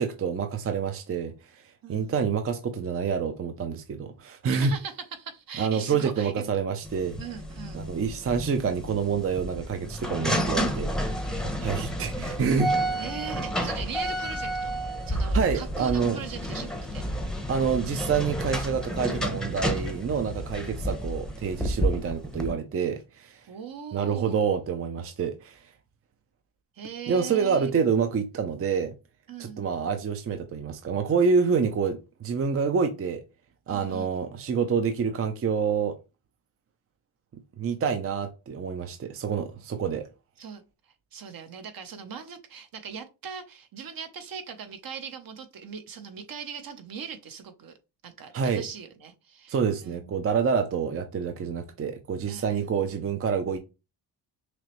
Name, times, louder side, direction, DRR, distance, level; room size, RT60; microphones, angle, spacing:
voice 1, 0.0-1.3 1.9-4.7 5.6-7.2 7.7-10.9 11.4-12.7 15.3-16.2 17.5-23.4 23.9-25.6 27.1-28.9 29.4-33.2 33.7-36.0 37.6-40.0 48.3-48.6 49.5-53.6, right 6 dB, 35° right, 0.5 m, -27 dB
voice 2, 1.8-2.2 4.5-6.5 7.2-7.9 13.0-14.7 15.1-17.0 23.5-24.5 26.7-27.8 29.3-29.6 33.7-34.3 40.4-47.8 48.0-50.3 52.2-53.0, right 7 dB, 55° right, 0.9 m, -40 dB
sound 1, 6.8-22.5, equal, ahead, 0.7 m, -30 dB
6.0 x 2.0 x 3.0 m
cardioid pair, 95°, 41 cm